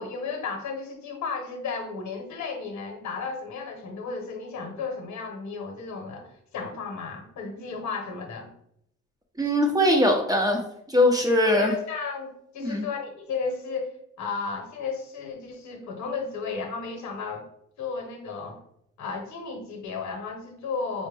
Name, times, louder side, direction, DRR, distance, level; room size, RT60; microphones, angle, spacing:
voice 1, 0.0-8.5 11.2-17.4 17.8-18.6 19.0-21.1, left 4 dB, 70° left, 3 dB, 0.9 m, -34 dB
voice 2, 9.4-10.6 10.9-11.7 12.6-12.9, left 1 dB, 10° right, 1 dB, 0.7 m, -21 dB
4.2 x 2.1 x 3.3 m, 0.74 s
cardioid pair, 90°, 30 cm